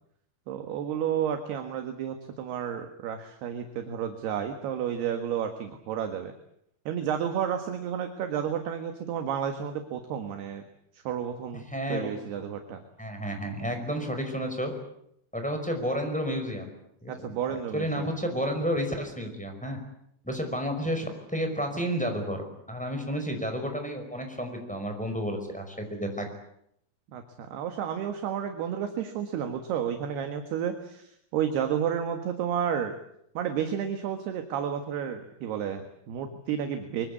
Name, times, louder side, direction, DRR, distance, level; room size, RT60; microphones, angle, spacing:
voice 1, 0.5-6.3 6.9-10.6 10.9-11.6 11.9-12.8 17.1-18.1 27.1-32.9 33.3-37.1, right 8 dB, 65° right, 6 dB, 3.3 m, -31 dB
voice 2, 11.7-12.1 12.4-12.5 13.0-14.7 15.3-16.7 17.0-17.1 17.5-19.8 20.2-26.3, equal, ahead, 3 dB, 4.7 m, -31 dB
24.5 x 24.0 x 8.5 m, 0.75 s
omnidirectional pair, 5.5 m